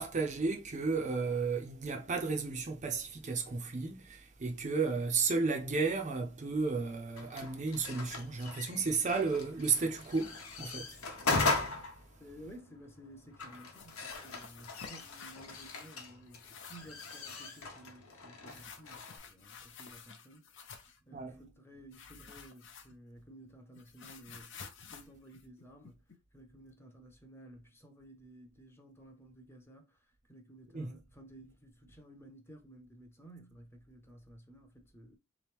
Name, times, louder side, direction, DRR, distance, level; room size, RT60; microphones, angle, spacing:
voice 1, 0.0-11.0 21.1-21.4 30.7-30.9, right 4 dB, 35° right, 0.5 m, -33 dB
sound 1, 7.2-19.2, left 3 dB, 80° left, 1.0 m, -39 dB
voice 2, 12.2-20.7 21.1-24.5 24.8-26.0 26.3-30.0 30.3-35.2, right 1 dB, 10° left, 0.6 m, -55 dB
sound 2, 13.6-16.0 16.3-17.5 18.5-21.0 21.9-23.2 23.5-26.2, left 6 dB, 55° left, 0.6 m, -52 dB
3.7 x 3.0 x 3.4 m
head